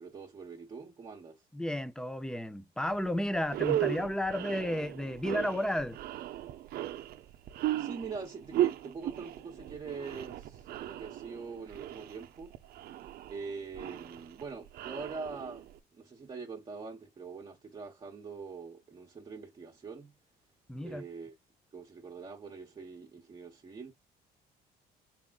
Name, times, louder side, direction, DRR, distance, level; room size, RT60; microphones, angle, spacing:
voice 1, 0.0-1.4 7.8-12.5 13.3-20.1 20.8-21.3 21.7-23.9, right 4 dB, 25° right, 1.0 m, -44 dB
voice 2, 1.5-6.0 20.7-21.0, left 1 dB, 5° left, 0.5 m, -32 dB
sound 1, 2.9-3.1 3.4-15.8, right 13 dB, 65° right, 0.6 m, -36 dB
4.3 x 3.6 x 2.4 m
cardioid pair, 110°, 17 cm